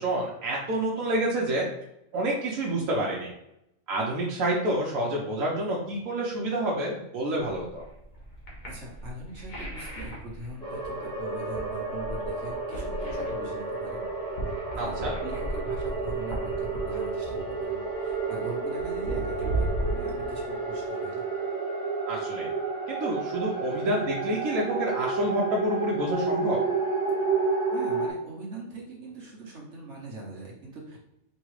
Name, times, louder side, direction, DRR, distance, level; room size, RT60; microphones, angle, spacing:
voice 1, 0.0-1.7 2.1-3.3 3.9-7.9 14.8-15.1 22.1-22.5 22.9-26.6, right 1 dB, 85° right, -3 dB, 1.2 m, -28 dB
sound 1, 7.4-20.8, right 1 dB, 85° left, 1.8 m, -36 dB
voice 2, 8.7-14.1 14.7-21.3 27.7-31.0, right 2 dB, 60° right, -3 dB, 1.4 m, -42 dB
sound 2, 10.6-28.1, right 4 dB, 5° left, 1.2 m, -31 dB
5.1 x 3.2 x 3.2 m, 0.82 s
omnidirectional pair, 1.4 m